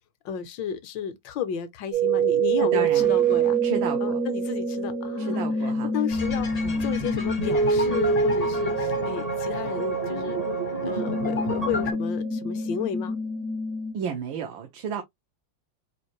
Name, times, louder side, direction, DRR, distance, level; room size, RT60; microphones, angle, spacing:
voice 1, 0.2-3.6 4.0-10.4 10.9-13.2, left 8 dB, 75° left, 1.4 m, -32 dB
sound 1, 1.9-13.9, right 4 dB, 60° right, 0.9 m, -26 dB
voice 2, 2.6-3.1 3.6-4.2 5.2-5.9 6.6-6.9 13.9-15.0, right 7 dB, 90° right, 1.5 m, -32 dB
sound 2, 6.1-11.9, left 2 dB, 40° left, 0.6 m, -32 dB
4.4 x 2.5 x 2.9 m
omnidirectional pair, 2.1 m